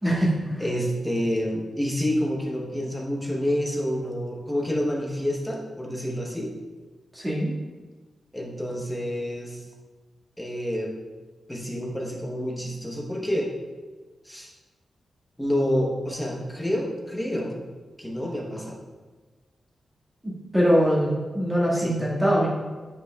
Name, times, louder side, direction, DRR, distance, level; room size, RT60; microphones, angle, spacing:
voice 1, 0.0-0.6 7.1-7.5 20.5-22.5, equal, 10° right, -6 dB, 1.9 m, -22 dB
voice 2, 0.6-6.5 8.3-9.6 10.4-10.9 11.5-13.5 14.2-14.5 15.4-17.6 18.0-18.8 21.7-22.0, equal, 5° left, -2 dB, 1.0 m, -28 dB
9.9 x 4.9 x 2.4 m, 1.3 s
wide cardioid pair, 120°, 0 cm